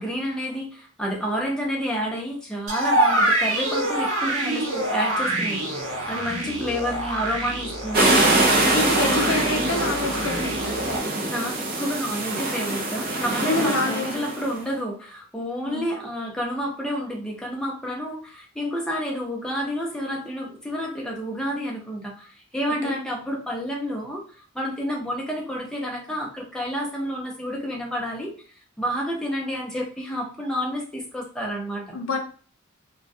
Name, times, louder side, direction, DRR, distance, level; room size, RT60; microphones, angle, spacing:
voice 1, 0.0-8.2 8.7-9.7 11.3-24.2 24.5-28.3 28.8-32.0, equal, 5° left, -2 dB, 0.6 m, -30 dB
sound 1, 2.7-11.0, right 1 dB, 85° right, 0.9 m, -26 dB
voice 2, 6.1-6.6 8.7-10.8 13.4-14.4 15.6-15.9 22.8-22.9 31.9-32.2, left 3 dB, 70° left, 4 dB, 0.5 m, -28 dB
sound 2, 7.9-14.5, right 2 dB, 45° right, 0.5 m, -23 dB
2.2 x 2.2 x 2.5 m, 0.41 s
head